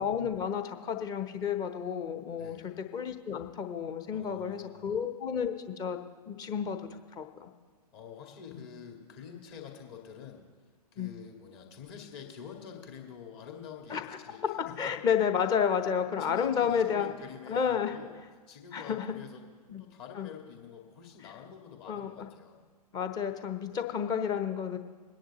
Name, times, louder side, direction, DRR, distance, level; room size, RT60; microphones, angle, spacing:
voice 1, 0.0-6.0 6.3-7.5 8.5-8.6 11.0-11.1 13.9-14.5 14.8-17.1 17.5-18.0 18.7-19.1 19.7-19.8 20.2-20.3 21.9-22.3 22.9-24.8, left 7 dB, 20° left, 7 dB, 0.9 m, -31 dB
voice 2, 2.3-2.7 4.1-4.9 7.9-10.4 10.9-14.7 16.0-18.2 18.5-19.4 19.8-22.6 23.7-23.9, left 7 dB, 40° left, 1 dB, 2.2 m, -47 dB
22.5 x 10.0 x 3.0 m, 1.5 s
figure-of-eight pair, 115°, 21 cm